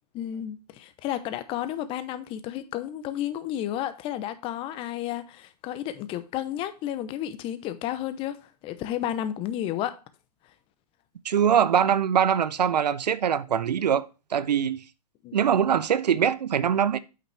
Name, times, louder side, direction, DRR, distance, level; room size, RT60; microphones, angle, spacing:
voice 1, 0.1-10.0 15.2-15.4, left 11 dB, 25° left, 0.7 m, -32 dB
voice 2, 11.2-14.1 14.3-14.8 15.3-17.0, right 8 dB, 75° right, 0.6 m, -23 dB
8.6 x 5.6 x 3.4 m
hypercardioid pair, 120°, 21 cm